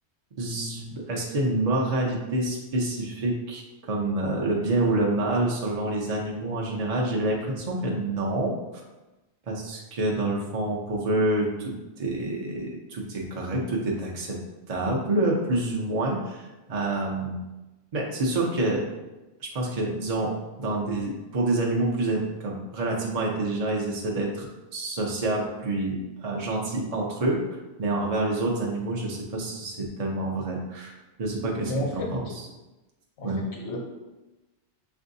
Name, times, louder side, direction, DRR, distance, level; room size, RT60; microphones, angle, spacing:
voice 1, 0.4-8.5 9.5-11.7 12.0-14.4 14.7-17.4 17.9-18.8 19.4-20.3 20.6-30.9 31.2-32.3 33.2-33.4, right 2 dB, 45° right, -2 dB, 0.5 m, -27 dB
voice 2, 31.6-32.4 33.2-33.8, equal, 70° left, 0 dB, 1.1 m, -32 dB
6.0 x 2.6 x 2.6 m, 1.1 s
omnidirectional pair, 1.2 m